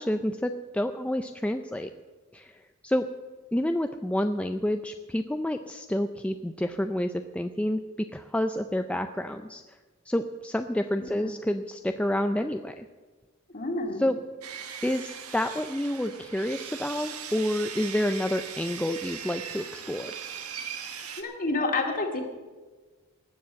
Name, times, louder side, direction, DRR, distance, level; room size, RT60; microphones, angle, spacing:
voice 1, 0.0-1.9 2.3-3.1 3.5-9.6 10.1-12.9 14.0-14.2 14.8-20.1, left 1 dB, 5° left, 7 dB, 0.4 m, -29 dB
voice 2, 11.0-11.3 13.5-14.1 21.2-22.2, left 3 dB, 40° left, 3 dB, 2.2 m, -29 dB
Sawing, 14.4-21.2, right 7 dB, 90° right, 1.5 m, -39 dB
19.0 x 7.2 x 7.5 m, 1.3 s
head